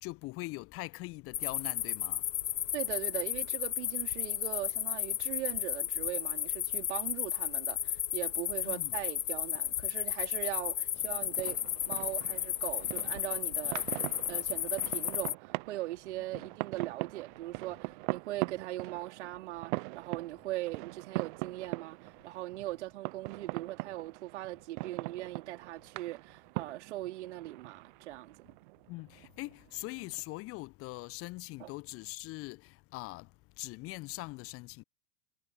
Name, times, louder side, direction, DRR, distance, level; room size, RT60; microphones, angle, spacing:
voice 1, 0.0-2.5 8.6-9.0 16.3-16.4 28.9-34.8, left 21 dB, 35° left, 1.1 m, -42 dB
sound 1, 1.3-15.3, left 11 dB, 65° left, 1.8 m, -34 dB
voice 2, 2.7-13.8 14.3-28.5 31.6-31.7, right 16 dB, 55° right, 4.0 m, -40 dB
sound 2, 10.9-30.2, right 26 dB, 40° right, 0.6 m, -42 dB
figure-of-eight pair, 90°, 41 cm